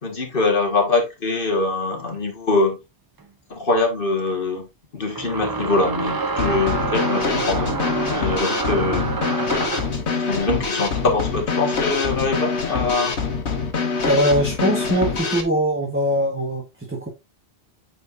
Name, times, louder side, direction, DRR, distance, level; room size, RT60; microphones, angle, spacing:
voice 1, 0.0-2.8 3.5-4.7 4.9-7.8 8.1-9.1 10.1-13.1, left 3 dB, 55° left, 1.8 m, -23 dB
sound 1, 3.2-3.3 5.2-10.0, right 4 dB, 30° right, 0.5 m, -27 dB
Drum kit / Snare drum, 6.4-15.4, left 4 dB, 90° left, 1.6 m, -25 dB
voice 2, 14.0-17.1, equal, 10° right, 1.1 m, -21 dB
9.0 x 4.4 x 2.5 m
omnidirectional pair, 1.1 m